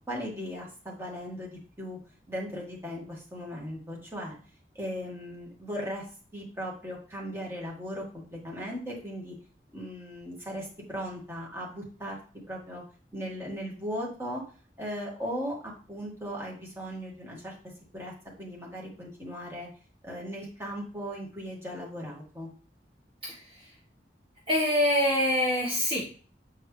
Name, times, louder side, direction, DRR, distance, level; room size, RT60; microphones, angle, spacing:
voice 1, 0.1-2.0 2.3-4.4 4.7-6.1 6.3-9.4 9.7-12.2 12.5-12.8 13.1-14.4 14.8-17.5 17.9-19.7 20.0-22.5, equal, 15° right, -4 dB, 1.9 m, -37 dB
voice 2, 23.2-23.7 24.5-26.0, equal, 30° right, -4 dB, 1.5 m, -25 dB
7.8 x 4.5 x 3.3 m, 0.39 s
head